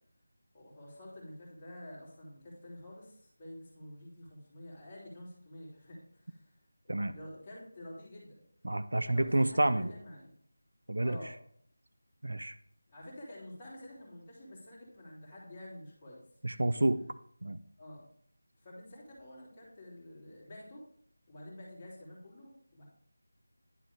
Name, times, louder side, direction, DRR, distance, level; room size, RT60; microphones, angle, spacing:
voice 1, 0.5-6.5 6.8-8.4 9.1-10.3 11.0-11.4 12.9-16.2 16.5-16.6 17.8-18.0 18.6-20.8 21.3-22.8, left 1 dB, 20° left, -7 dB, 2.6 m, -49 dB
voice 2, 8.6-9.9 10.9-11.2 12.2-12.5 16.4-17.0 17.4-17.6, right 1 dB, 75° right, 11 dB, 0.5 m, -29 dB
10.5 x 4.0 x 3.4 m, 0.63 s
figure-of-eight pair, 165°, 0 cm